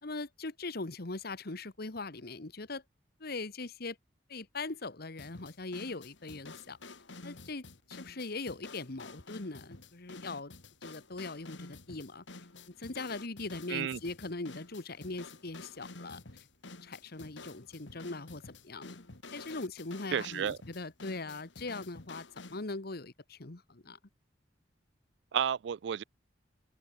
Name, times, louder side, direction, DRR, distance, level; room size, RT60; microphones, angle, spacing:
voice 1, 0.0-2.8 3.2-4.0 4.3-6.8 7.2-10.5 10.8-12.2 12.7-16.2 16.8-19.0 19.3-24.0, left 3 dB, 60° left, 1.5 m, -41 dB
sound 1, 5.2-22.6, left 3 dB, 80° left, 2.5 m, -50 dB
voice 2, 13.7-14.0 20.1-20.6 25.3-26.0, right 8 dB, 70° right, 0.4 m, -31 dB
open air
head